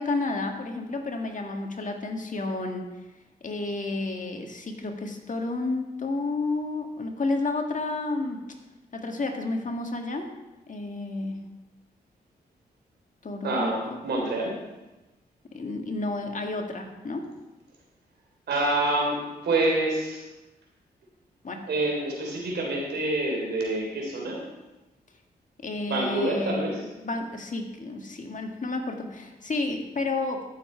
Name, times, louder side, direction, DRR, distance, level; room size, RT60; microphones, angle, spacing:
voice 1, 0.0-2.9 3.4-8.4 8.9-10.3 10.7-11.4 13.2-13.7 15.5-17.3 21.4-21.6 25.6-26.6 27.0-30.4, left 3 dB, 50° left, 3 dB, 1.8 m, -31 dB
voice 2, 13.4-14.5 18.5-20.2 21.7-24.4 25.9-26.8, right 2 dB, 80° right, -1 dB, 3.6 m, -27 dB
14.0 x 7.1 x 4.5 m, 1.1 s
cardioid pair, 60°, 17 cm